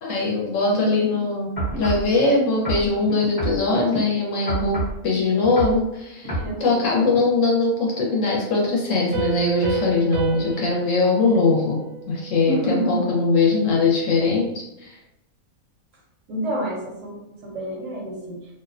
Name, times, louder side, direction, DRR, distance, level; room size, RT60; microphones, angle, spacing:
voice 1, 0.0-6.3 6.6-11.8 12.1-15.0, left 3 dB, 65° left, -3 dB, 0.9 m, -21 dB
voice 2, 0.7-1.2 6.2-7.1 12.5-13.1 16.3-18.5, right 1 dB, 65° right, -3 dB, 0.8 m, -29 dB
sound 1, 1.6-2.1 2.7-4.0 4.5-5.0 5.4-5.8 6.3-6.5 7.1-7.2, right 2 dB, 35° left, 1.0 m, -28 dB
Piano, 9.1-12.5, right 6 dB, 85° right, 1.1 m, -31 dB
2.5 x 2.1 x 2.4 m, 0.89 s
omnidirectional pair, 1.6 m